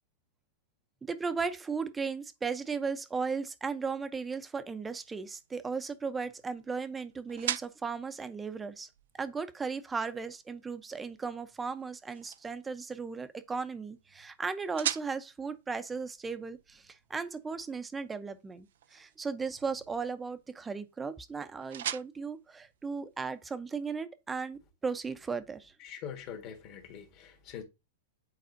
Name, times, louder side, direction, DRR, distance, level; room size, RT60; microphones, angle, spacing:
voice 1, 1.0-8.9 9.2-25.7, right 5 dB, 15° right, 0.7 m, -36 dB
sound 1, 4.7-23.6, right 11 dB, 75° right, 0.4 m, -44 dB
voice 2, 25.8-27.6, left 8 dB, 40° left, 1.7 m, -43 dB
9.3 x 4.1 x 2.7 m
hypercardioid pair, 130°, 0 cm